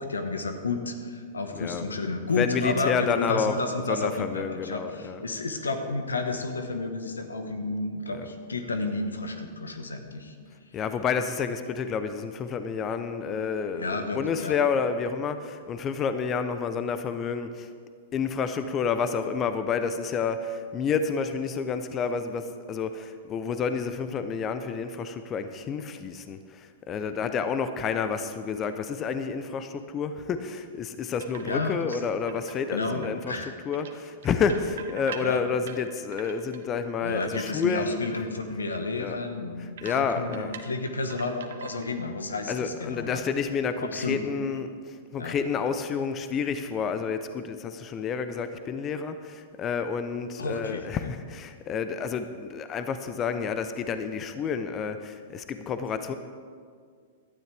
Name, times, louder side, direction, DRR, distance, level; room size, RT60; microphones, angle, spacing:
voice 1, 0.0-10.3 13.7-14.5 31.4-32.0 32.7-33.5 35.2-35.4 37.0-43.2 43.8-44.2 45.2-45.3 50.4-51.1, left 3 dB, 90° left, 7 dB, 1.3 m, -31 dB
voice 2, 1.5-2.0 2.3-5.2 8.1-8.3 10.7-17.7 18.1-38.3 39.0-39.2 39.6-40.6 42.5-56.1, left 6 dB, 30° left, 10 dB, 0.7 m, -30 dB
sound 1, 31.2-32.0 32.3-33.4 33.7-36.6 37.0-37.8 38.0-38.3 38.7-38.8 39.1-39.2 39.8-42.0 42.3-42.6, right 8 dB, 70° right, 1.2 m, -43 dB
17.0 x 12.0 x 3.5 m, 2.1 s
hypercardioid pair, 110°, 0 cm